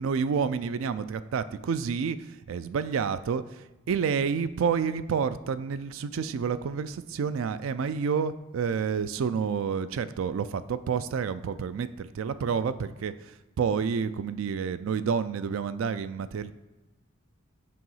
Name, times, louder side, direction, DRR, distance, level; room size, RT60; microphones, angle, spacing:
voice 1, 0.0-16.5, right 6 dB, 70° right, 13 dB, 0.3 m, -29 dB
7.6 x 3.0 x 5.5 m, 1.1 s
head